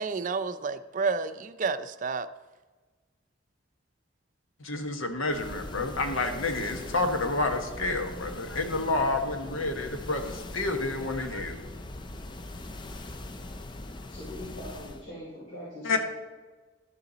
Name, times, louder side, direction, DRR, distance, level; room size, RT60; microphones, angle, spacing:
voice 1, 0.0-2.3, right 4 dB, 40° right, 12 dB, 0.4 m, -30 dB
voice 2, 4.6-11.6 15.8-16.0, left 2 dB, 85° left, 5 dB, 1.1 m, -29 dB
sound 1, 5.3-15.1, left 2 dB, 25° left, 0.4 m, -41 dB
voice 3, 14.1-16.0, left 1 dB, 55° left, -8 dB, 3.2 m, -41 dB
12.0 x 7.0 x 3.9 m, 1.3 s
head